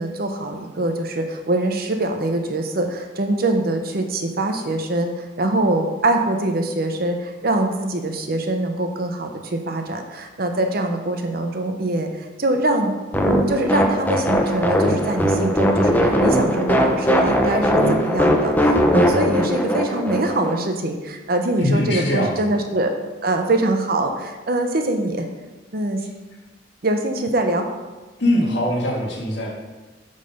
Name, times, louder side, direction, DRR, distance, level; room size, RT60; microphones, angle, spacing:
voice 1, 0.0-12.9 13.2-22.9 23.2-25.2 25.7-26.0 26.8-27.7, right 2 dB, 50° right, 5 dB, 0.7 m, -23 dB
sound 1, 13.1-20.6, equal, 10° left, 0.5 m, -19 dB
voice 2, 21.6-22.6 28.2-29.5, left 1 dB, 60° left, -2 dB, 1.7 m, -22 dB
8.4 x 4.0 x 5.4 m, 1.2 s
head